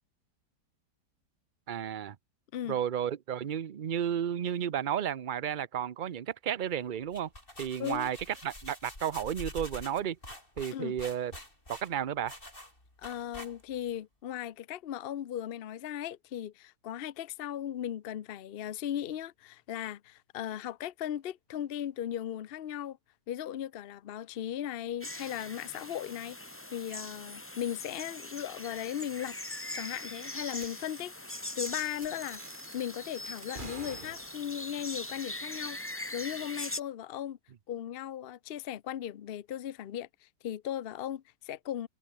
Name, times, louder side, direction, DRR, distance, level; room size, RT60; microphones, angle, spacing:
voice 1, 1.7-2.2 2.7-7.3 7.6-10.2 10.6-11.3 11.7-12.4, right 9 dB, 55° right, 0.5 m, -32 dB
sound 1, 7.0-13.9, left 1 dB, 30° left, 7.0 m, -46 dB
voice 2, 7.8-8.1 10.7-11.0 13.0-23.0 23.3-29.4 29.7-32.4 32.7-35.8 36.1-37.4 37.7-41.9, left 10 dB, 65° left, 0.5 m, -37 dB
sound 2, 25.0-36.8, left 1 dB, 10° left, 1.4 m, -41 dB
sound 3, 30.5-30.7 30.9-31.2 31.5-31.7 32.0-32.8 33.3-34.6, right 3 dB, 30° right, 2.5 m, -47 dB
omnidirectional pair, 1.8 m